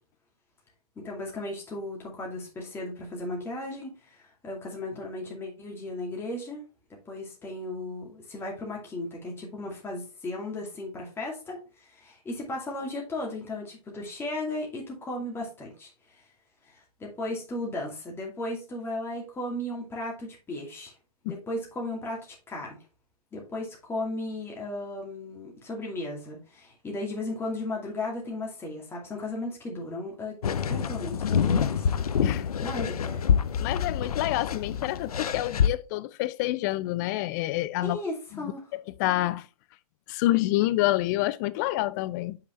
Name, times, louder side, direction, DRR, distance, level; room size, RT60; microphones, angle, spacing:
voice 1, 1.0-6.6 7.1-16.2 16.6-20.9 21.3-22.8 23.3-30.4 30.7-31.9 32.6-33.2 37.8-38.6, left 2 dB, 10° left, 2.4 m, -35 dB
sound 1, 30.4-35.7, left 7 dB, 70° left, 0.7 m, -26 dB
voice 2, 33.6-38.0 38.3-39.5 40.1-42.4, left 17 dB, 30° left, 0.4 m, -28 dB
7.9 x 5.7 x 3.1 m
figure-of-eight pair, 120°, 20 cm